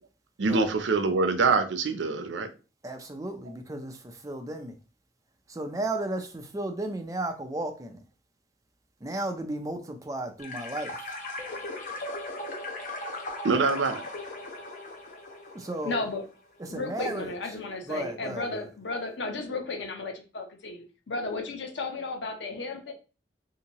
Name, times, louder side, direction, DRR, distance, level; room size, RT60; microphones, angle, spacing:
voice 1, 0.4-2.5 13.4-14.0, right 4 dB, 90° right, 0.5 m, -24 dB
voice 2, 2.8-4.8 5.5-8.0 9.0-11.1 15.5-16.0 16.6-17.3 17.8-18.6, right 2 dB, 20° right, 0.5 m, -34 dB
sound 1, 10.4-16.1, left 2 dB, 45° left, 0.7 m, -38 dB
voice 3, 15.8-16.2 16.7-22.9, left 3 dB, 85° left, 0.7 m, -34 dB
3.4 x 2.8 x 2.9 m
head